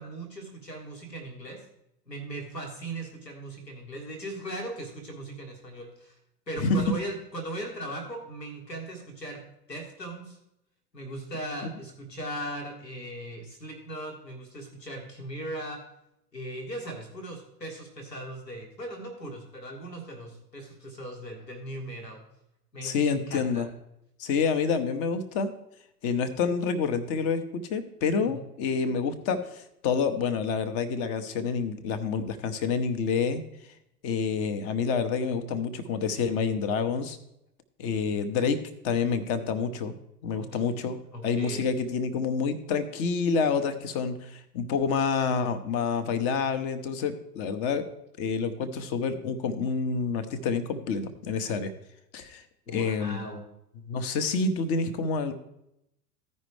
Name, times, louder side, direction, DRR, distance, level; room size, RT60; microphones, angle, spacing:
voice 1, 0.0-1.6 2.1-6.1 6.5-9.4 9.7-10.4 10.9-15.8 16.3-22.2 22.7-23.6 28.2-28.4 40.3-40.7 41.1-41.7 52.7-53.4, right 1 dB, 85° left, 1 dB, 1.7 m, -38 dB
voice 2, 22.8-23.7 24.2-25.5 26.0-33.4 34.0-37.2 37.8-39.9 40.2-47.8 48.2-51.7 52.1-52.4 52.7-53.3 53.9-55.3, left 5 dB, 30° left, 10 dB, 0.9 m, -28 dB
15.0 x 5.4 x 3.2 m, 0.81 s
figure-of-eight pair, 95°, 49 cm